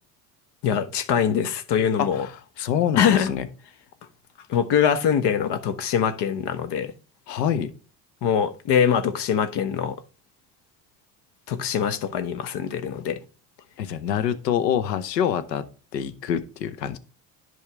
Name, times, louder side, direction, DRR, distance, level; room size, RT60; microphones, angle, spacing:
voice 1, 0.6-2.3 3.0-3.3 4.5-6.9 8.2-10.0 11.5-13.2, left 8 dB, 55° left, 1.2 m, -23 dB
voice 2, 2.0-2.3 2.6-3.5 7.3-7.7 13.8-15.7 15.9-17.0, left 9 dB, 85° left, 0.9 m, -26 dB
11.0 x 4.7 x 3.4 m
hypercardioid pair, 65°, 48 cm